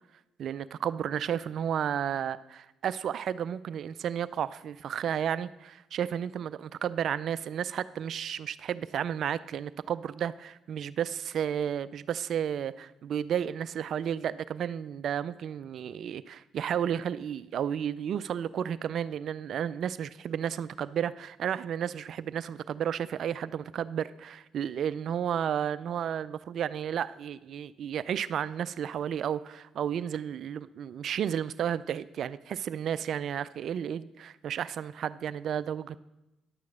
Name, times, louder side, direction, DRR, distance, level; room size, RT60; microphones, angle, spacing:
voice 1, 0.4-36.0, right 9 dB, 60° right, 16 dB, 0.4 m, -32 dB
10.5 x 6.5 x 6.1 m, 0.96 s
hypercardioid pair, 60°, 0 cm